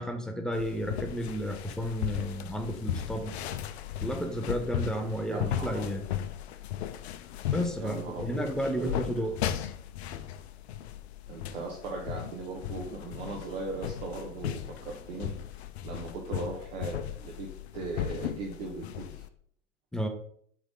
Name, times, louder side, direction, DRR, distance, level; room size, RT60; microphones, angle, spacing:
voice 1, 0.0-3.3 4.0-6.0 7.5-9.4 19.9-20.1, equal, ahead, 5 dB, 0.4 m, -32 dB
sound 1, 0.5-19.3, left 10 dB, 50° left, 0.6 m, -37 dB
voice 2, 5.3-6.0 7.8-8.5 8.8-9.3 11.3-19.2, right 3 dB, 50° right, 0 dB, 1.2 m, -39 dB
6.2 x 3.6 x 4.9 m, 0.63 s
figure-of-eight pair, 90°, 40 cm